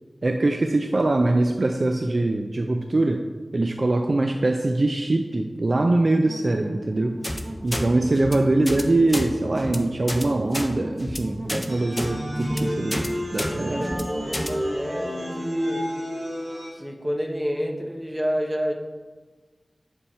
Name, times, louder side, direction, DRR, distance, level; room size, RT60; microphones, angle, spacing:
voice 1, 0.2-3.2 3.5-7.2 7.6-13.9, right 2 dB, 60° right, 5 dB, 0.3 m, -23 dB
sound 1, 5.7-14.4, right 1 dB, 45° right, 0.9 m, -39 dB
sound 2, 7.2-7.4 7.7-7.8 8.2-8.3 8.7-8.8 9.1-9.3 9.6-9.8 10.1-10.2 10.5-10.7 11.0-11.2 11.5-11.7 12.0-12.1 12.4-12.6 12.9-13.1 13.4-13.5 13.8-14.0 14.3-14.5, equal, 15° left, 0.6 m, -29 dB
sound 3, 11.7-16.7, equal, 85° right, 1.7 m, -30 dB
voice 2, 13.7-15.9 16.7-18.7, equal, 15° right, 2 dB, 0.8 m, -29 dB
7.1 x 3.5 x 4.3 m, 1.4 s
wide cardioid pair, 45°, 0 cm